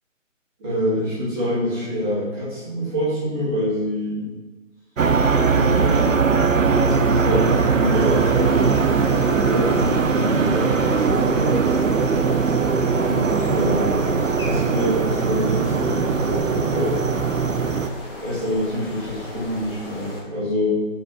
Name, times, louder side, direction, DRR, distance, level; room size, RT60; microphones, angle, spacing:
voice 1, 0.6-4.3 5.5-6.1 6.7-11.6 13.0-17.0 18.2-20.8, equal, 10° right, -11 dB, 1.6 m, -26 dB
sound 1, 5.0-17.9, right 5 dB, 75° right, 0.6 m, -20 dB
sound 2, 7.9-20.2, left 2 dB, 45° left, 1.4 m, -36 dB
6.7 x 4.4 x 3.8 m, 1.3 s
figure-of-eight pair, 150°, 39 cm